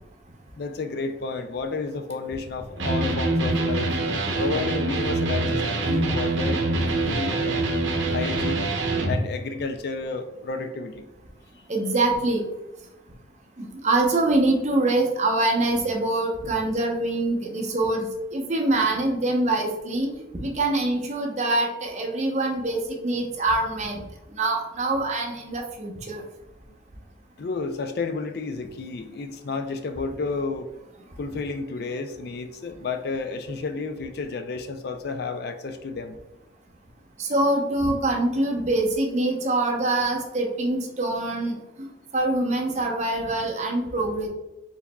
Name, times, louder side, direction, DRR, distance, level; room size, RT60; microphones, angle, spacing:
voice 1, 0.5-3.9 4.4-7.6 8.1-8.7 9.1-11.1 11.6-11.7 27.4-30.7 31.2-36.2, left 4 dB, 55° left, 8 dB, 0.3 m, -31 dB
Electric guitar, 2.8-9.2, right 2 dB, 70° right, 0.8 m, -25 dB
voice 2, 11.7-12.4 13.6-20.1 20.3-24.0 24.3-26.2 37.2-41.9 42.1-44.3, right 2 dB, 35° right, 0 dB, 0.7 m, -24 dB
4.6 x 4.0 x 2.2 m, 0.99 s
head